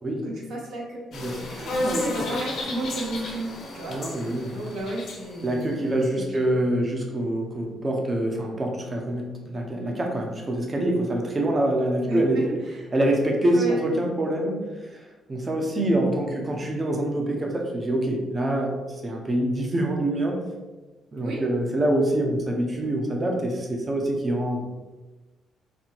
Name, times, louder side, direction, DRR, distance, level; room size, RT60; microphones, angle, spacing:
voice 1, 0.2-1.1 1.3-5.7 6.1-6.6 12.0-12.8 13.5-13.8 21.2-21.4, right 2 dB, 75° right, -3 dB, 1.3 m, -33 dB
sound 1, 1.1-6.1, left 2 dB, 70° left, 1.1 m, -33 dB
voice 2, 1.1-2.3 3.9-4.6 5.4-12.5 12.9-20.4 21.1-24.6, right 1 dB, 30° right, 1 dB, 0.9 m, -25 dB
4.3 x 2.2 x 4.5 m, 1.2 s
cardioid pair, 90°, 0 cm